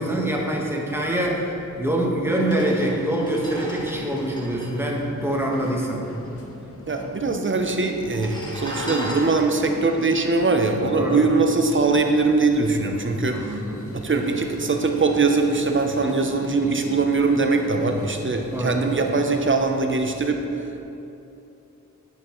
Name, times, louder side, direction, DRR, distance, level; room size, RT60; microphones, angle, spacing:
voice 1, 0.0-6.1 10.9-11.2 13.3-13.7 18.5-18.8, right 1 dB, 5° right, -2 dB, 1.3 m, -25 dB
sound 1, 1.7-1.8 2.3-6.0 6.3-6.4 6.5-7.2 7.9-11.4 11.9-12.1, equal, 15° left, 1.4 m, -38 dB
sound 2, 2.9-19.4, left 2 dB, 45° left, 0.8 m, -39 dB
voice 2, 6.9-13.6 13.9-20.8, right 3 dB, 40° right, 4 dB, 0.6 m, -22 dB
9.7 x 5.3 x 3.1 m, 2.9 s
cardioid pair, 50°, 32 cm